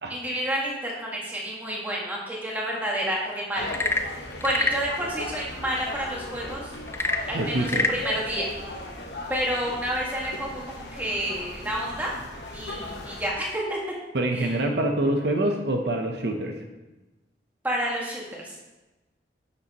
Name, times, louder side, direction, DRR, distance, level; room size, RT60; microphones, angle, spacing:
voice 1, 0.1-3.7 4.4-6.7 7.3-7.7 7.9-8.5 9.3-12.1 12.5-13.8 14.3-14.5 17.6-18.5, equal, 10° right, -4 dB, 1.6 m, -29 dB
sound 1, 3.5-13.3, left 1 dB, 80° left, 1.2 m, -38 dB
Frog / Percussion / Wood, 3.6-4.9 6.9-8.0, left 3 dB, 15° left, 0.3 m, -26 dB
voice 2, 7.3-7.9 14.1-16.6, right 1 dB, 70° right, 3 dB, 0.8 m, -25 dB
9.7 x 6.8 x 3.0 m, 1.1 s
head